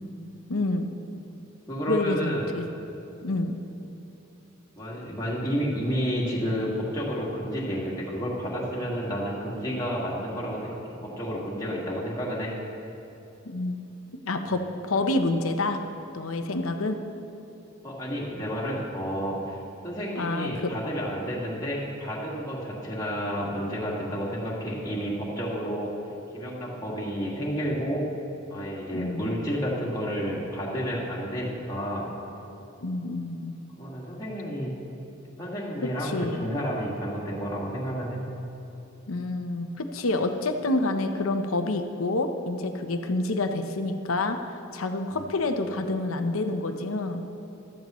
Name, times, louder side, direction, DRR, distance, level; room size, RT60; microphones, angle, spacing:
voice 1, 0.5-0.9 1.9-2.7 3.2-3.5 13.4-13.9 14.2-15.8 16.1-17.0 20.2-20.7 28.9-29.4 32.8-33.6 35.8-36.5 39.1-44.4 44.7-47.2, left 2 dB, 70° left, 6 dB, 0.8 m, -28 dB
voice 2, 1.7-2.5 4.8-12.5 14.4-14.6 17.8-25.9 26.3-28.1 28.5-32.0 33.8-34.7 35.4-38.2, equal, 15° left, -6 dB, 2.0 m, -31 dB
14.5 x 13.0 x 3.1 m, 2.9 s
head